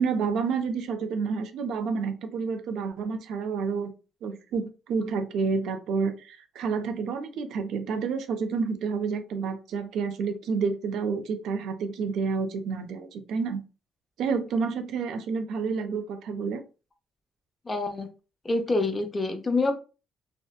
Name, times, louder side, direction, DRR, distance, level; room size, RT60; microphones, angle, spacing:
voice 1, 0.0-3.9 4.2-13.6 14.2-16.6, right 5 dB, 80° right, 8 dB, 0.4 m, -29 dB
voice 2, 17.7-18.1 18.4-19.8, left 3 dB, 25° left, 6 dB, 0.6 m, -26 dB
2.7 x 2.1 x 2.3 m, 0.32 s
cardioid pair, 90°, 0 cm